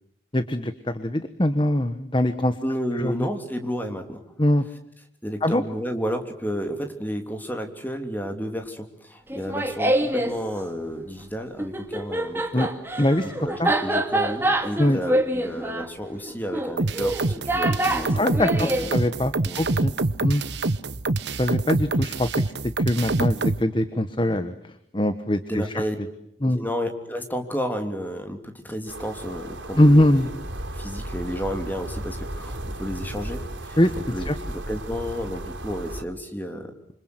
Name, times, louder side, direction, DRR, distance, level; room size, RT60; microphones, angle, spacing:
voice 1, 0.3-2.6 3.0-3.1 4.4-4.6 5.4-5.6 12.5-12.7 13.0-13.3 13.6-13.7 14.8-15.0 18.1-19.9 20.2-20.4 21.4-22.3 22.8-24.5 24.9-25.8 26.4-26.6 29.8-30.3 33.8-33.9 34.3-34.4, left 1 dB, 25° left, 10 dB, 1.3 m, -22 dB
voice 2, 2.6-4.2 5.2-12.7 13.2-18.9 19.4-19.6 25.5-26.0 26.4-30.3 30.7-36.7, equal, 10° left, 5 dB, 3.2 m, -32 dB
Laughter, 9.3-10.4 11.6-18.9, right 1 dB, 10° right, 2.3 m, -25 dB
sound 1, 16.8-23.6, right 2 dB, 65° right, 1.1 m, -25 dB
sound 2, 28.9-36.0, right 1 dB, 90° right, 3.7 m, -35 dB
27.5 x 26.5 x 8.0 m, 0.76 s
head